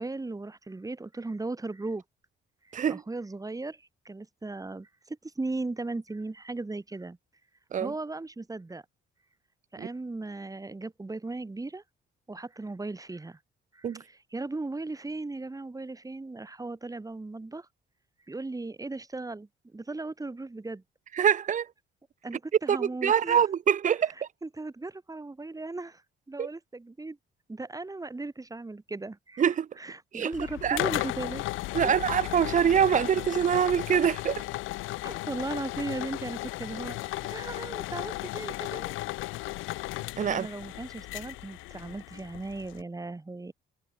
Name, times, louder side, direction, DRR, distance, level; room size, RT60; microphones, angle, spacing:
voice 1, 0.0-2.0 2.6-7.2 7.8-8.8 9.7-11.8 12.3-13.4 13.7-17.7 18.3-20.8 22.2-23.5 24.4-26.0 26.3-27.2 27.5-29.5 29.8-31.4 35.0-38.9 40.3-43.5, right 2 dB, 15° right, 2.8 m, -37 dB
voice 2, 21.1-21.7 22.7-24.3 26.4-26.5 29.4-29.7 30.1-30.3 30.6-30.8 31.7-34.5 40.2-40.5, right 8 dB, 40° right, 0.7 m, -25 dB
sound 1, 30.3-42.8, left 19 dB, 85° left, 0.4 m, -35 dB
cardioid pair, 90°, 20 cm